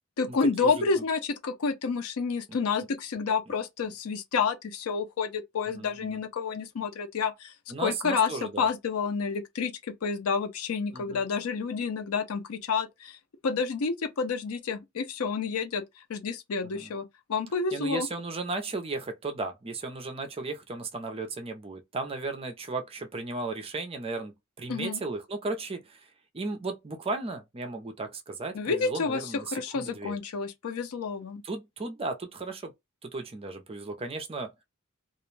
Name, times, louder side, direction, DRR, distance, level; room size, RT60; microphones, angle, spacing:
voice 1, 0.2-7.5 7.8-13.2 13.4-15.8 16.1-18.1 24.7-25.0 28.5-29.2 29.5-31.4, left 5 dB, 85° left, 0.5 m, -29 dB
voice 2, 5.7-6.2 7.7-8.7 10.9-11.2 16.6-16.9 17.7-26.1 26.3-30.1 31.4-32.7 33.0-34.5, right 3 dB, 25° right, 0.5 m, -35 dB
2.4 x 2.1 x 3.1 m
head